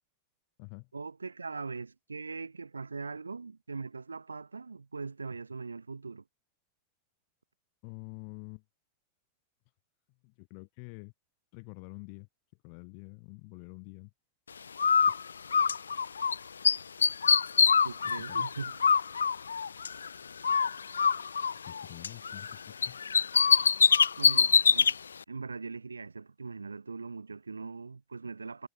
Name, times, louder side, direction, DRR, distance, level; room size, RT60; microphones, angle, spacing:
voice 1, 0.9-6.2 17.8-18.8 24.2-25.0 25.3-28.7, right 4 dB, 75° right, 2.9 m, -41 dB
voice 2, 7.8-8.6 10.2-11.1 11.5-12.3 12.6-14.1 15.1-15.2 18.2-18.7 21.5-23.0 24.4-24.5, left 40 dB or more, 45° left, 2.2 m, -47 dB
Bird, 14.8-16.4 16.6-20.1 20.4-22.5 22.8-24.9, left 6 dB, 70° left, 0.4 m, -24 dB
figure-of-eight pair, 90°, 0 cm